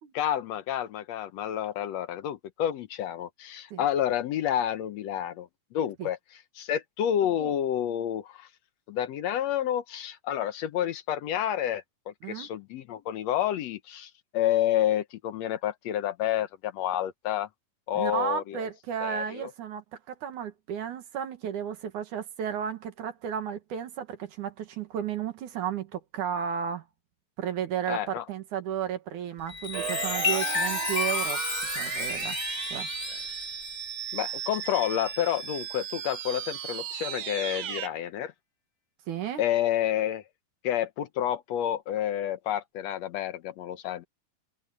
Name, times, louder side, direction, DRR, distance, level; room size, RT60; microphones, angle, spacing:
voice 1, 0.1-6.2 6.6-8.5 8.9-17.5 17.9-18.7 19.0-19.5 27.9-28.3 34.1-38.3 39.4-40.2 40.6-44.0, left 11 dB, 70° left, 1.7 m, -29 dB
voice 2, 18.0-26.8 27.4-31.4 31.8-32.4 32.7-32.9 39.1-39.4, right 8 dB, 70° right, 3.0 m, -33 dB
Chime, 29.4-35.4 35.9-36.2, left 4 dB, 25° left, 1.0 m, -33 dB
sound 1, 29.7-37.9, right 10 dB, 85° right, 1.1 m, -35 dB
omnidirectional pair, 3.8 m